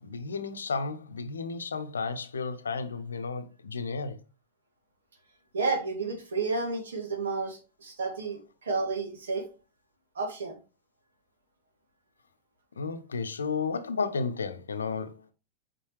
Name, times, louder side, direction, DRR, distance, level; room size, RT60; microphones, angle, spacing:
voice 1, 0.0-4.2 12.8-15.3, left 4 dB, 70° left, 0.8 m, -33 dB
voice 2, 5.5-9.5 10.2-10.6, right 4 dB, 65° right, 2.2 m, -31 dB
8.4 x 5.3 x 3.2 m
figure-of-eight pair, 90°, 0 cm